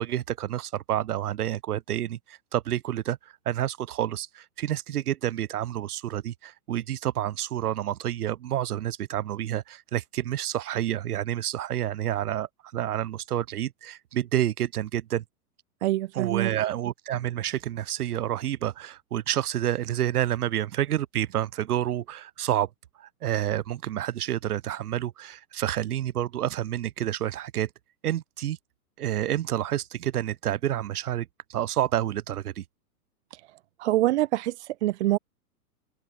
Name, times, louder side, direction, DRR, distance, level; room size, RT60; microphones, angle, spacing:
voice 1, 0.0-3.2 3.4-15.2 16.1-22.7 23.0-27.7 28.0-28.6 29.0-32.6, right 12 dB, 70° right, 1.7 m, -29 dB
voice 2, 15.8-16.5 33.3-33.4 33.8-35.2, right 15 dB, 45° right, 1.0 m, -25 dB
open air
hypercardioid pair, 155°, 47 cm